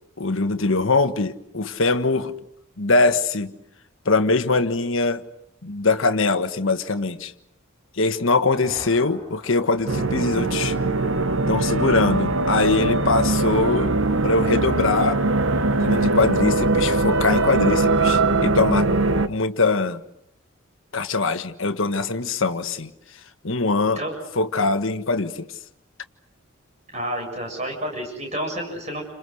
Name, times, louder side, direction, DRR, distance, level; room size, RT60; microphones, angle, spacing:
voice 1, 0.2-2.3 2.8-3.5 4.0-5.2 5.6-7.3 7.9-10.8 11.5-14.0 14.2-15.2 15.8-18.9 19.3-20.0 20.9-22.9 23.4-24.0 24.4-25.5, left 3 dB, 65° left, 1.4 m, -22 dB
sound 1, 8.0-11.9, equal, 20° left, 6.4 m, -46 dB
sound 2, 9.9-19.3, right 2 dB, 65° right, 1.0 m, -21 dB
voice 2, 26.9-29.0, right 1 dB, 30° right, 7.5 m, -29 dB
30.0 x 26.5 x 6.4 m
head